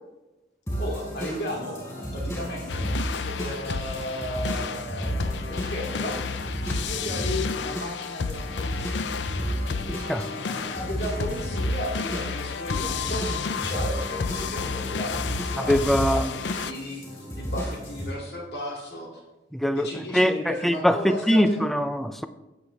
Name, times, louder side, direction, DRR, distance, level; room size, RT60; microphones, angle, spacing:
sound 1, 0.7-18.1, equal, 20° left, 4.6 m, -33 dB
voice 1, 0.8-6.2 6.6-9.3 10.2-19.2 19.7-21.6, left 1 dB, 60° left, 2.8 m, -35 dB
sound 2, 2.7-16.7, left 5 dB, 90° left, 0.5 m, -32 dB
voice 2, 9.9-10.3 15.6-16.3 19.5-22.3, equal, ahead, 0.5 m, -23 dB
18.5 x 7.7 x 3.4 m
head